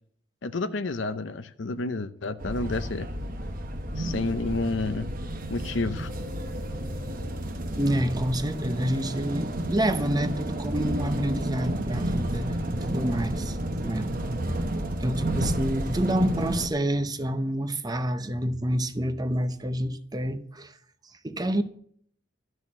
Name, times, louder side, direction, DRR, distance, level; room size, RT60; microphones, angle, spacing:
voice 1, 0.4-3.1 4.0-5.1 5.5-6.1, left 3 dB, 70° left, 0.7 m, -30 dB
sound 1, 2.4-16.7, right 1 dB, 45° right, 1.3 m, -31 dB
voice 2, 7.8-13.6 13.8-14.1 15.0-20.7 21.2-21.6, right 1 dB, 20° right, 0.8 m, -28 dB
12.5 x 6.3 x 7.5 m
head